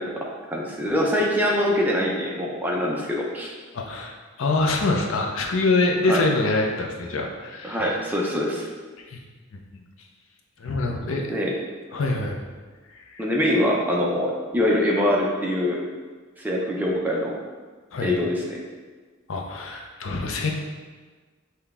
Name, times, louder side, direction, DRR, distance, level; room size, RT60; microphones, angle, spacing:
voice 1, 0.0-3.5 6.1-6.2 7.6-8.7 11.3-11.5 13.2-15.8 16.4-17.4 18.0-18.6, left 1 dB, 10° right, -3 dB, 0.5 m, -24 dB
voice 2, 3.7-7.8 9.1-9.2 9.7-9.8 10.6-11.2 11.9-12.4 12.9-13.2 17.9-18.1 19.3-20.5, left 3 dB, 75° left, 2 dB, 0.6 m, -25 dB
5.8 x 2.2 x 3.5 m, 1.4 s
head